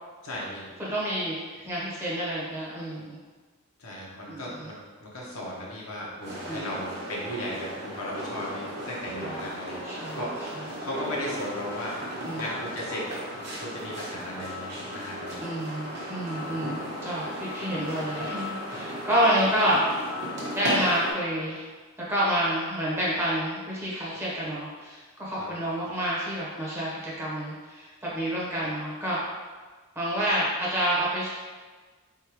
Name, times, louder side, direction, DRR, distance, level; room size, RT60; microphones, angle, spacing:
voice 1, 0.2-0.7 3.8-9.8 10.2-15.5 25.4-25.5, left 1 dB, 70° left, -4 dB, 1.0 m, -36 dB
voice 2, 0.8-3.2 4.3-4.7 6.5-6.7 9.2-9.4 9.8-10.6 12.2-12.5 15.4-19.8 20.5-21.7 22.0-29.2 29.9-31.3, equal, 10° right, -7 dB, 1.0 m, -29 dB
sound 1, 6.2-21.1, equal, 45° right, 1.1 m, -35 dB
4.3 x 3.6 x 3.0 m, 1.4 s
head